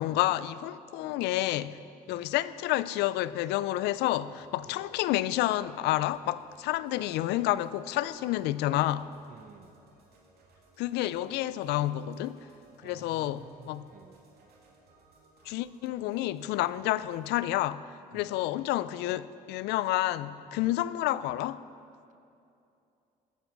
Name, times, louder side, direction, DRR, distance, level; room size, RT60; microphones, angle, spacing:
voice 1, 0.0-1.8 2.1-9.1 10.8-12.4 12.8-13.9 15.5-21.6, left 15 dB, 85° left, 0.4 m, -29 dB
sound 1, 3.8-17.4, right 3 dB, 70° right, 2.2 m, -61 dB
voice 2, 9.3-9.8 12.8-14.2 18.1-18.3 20.6-20.8, right 7 dB, 50° right, 1.0 m, -52 dB
14.5 x 9.1 x 4.6 m
cardioid pair, 110°, 17 cm